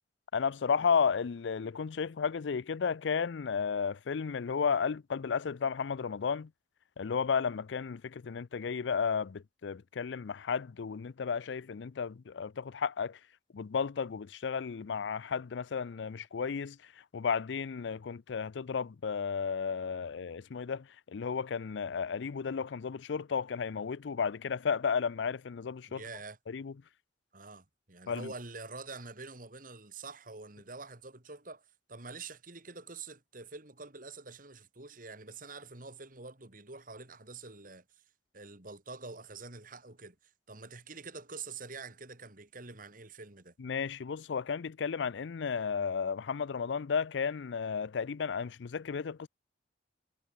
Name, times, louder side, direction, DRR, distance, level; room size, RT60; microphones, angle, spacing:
voice 1, 0.3-6.5 7.0-13.2 13.5-26.0 26.5-26.7 28.1-28.3 43.6-49.3, left 6 dB, 80° left, 0.5 m, -33 dB
voice 2, 25.9-26.4 27.3-37.8 38.3-40.2 40.5-43.5, right 4 dB, 50° right, 2.8 m, -46 dB
head